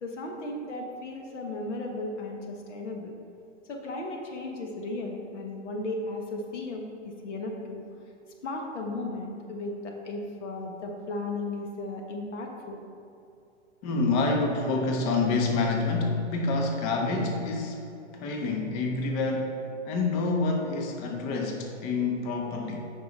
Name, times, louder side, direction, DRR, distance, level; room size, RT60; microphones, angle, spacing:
voice 1, 0.0-3.1 3.7-6.9 7.2-7.9 8.4-12.8, left 2 dB, 75° left, 2 dB, 1.3 m, -35 dB
voice 2, 13.8-17.8 18.1-22.8, left 3 dB, 40° left, 2 dB, 1.2 m, -27 dB
8.7 x 5.8 x 4.2 m, 2.6 s
hypercardioid pair, 115°, 36 cm